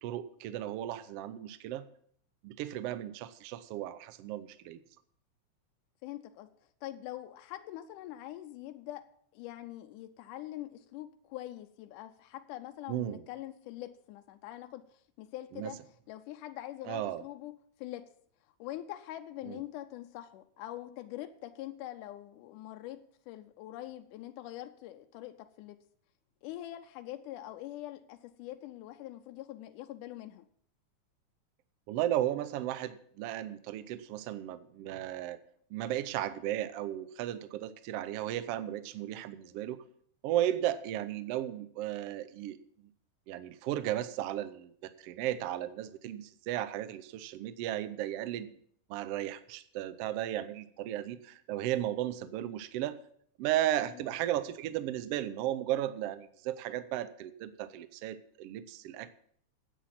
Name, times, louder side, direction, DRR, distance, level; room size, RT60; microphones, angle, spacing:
voice 1, 0.0-1.9 2.4-4.8 12.9-13.2 15.5-15.7 16.9-17.2 19.5-19.6 31.9-35.4 35.7-39.8 40.2-42.6 43.3-48.5 48.9-53.0 53.4-59.1, right 12 dB, 80° right, 13 dB, 1.3 m, -35 dB
voice 2, 6.0-6.5 6.8-9.0 9.3-15.8 16.1-18.1 18.6-25.8 26.4-30.5 53.9-54.0, left 14 dB, 85° left, 7 dB, 2.2 m, -44 dB
10.0 x 8.3 x 7.4 m, 0.63 s
omnidirectional pair, 3.6 m